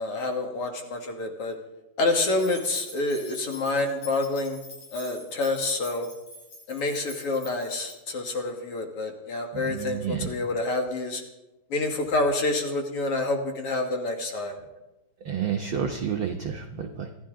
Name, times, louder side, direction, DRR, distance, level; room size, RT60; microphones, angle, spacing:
voice 1, 0.0-1.6 2.0-4.6 4.9-6.1 6.7-11.2 11.7-14.6, left 2 dB, 50° left, 3 dB, 2.3 m, -28 dB
sound 1, 2.2-7.9, left 2 dB, 70° left, 8.1 m, -45 dB
voice 2, 9.5-10.3 15.2-17.1, right 7 dB, 70° right, 3 dB, 1.2 m, -30 dB
27.0 x 12.0 x 3.8 m, 1.0 s
omnidirectional pair, 3.6 m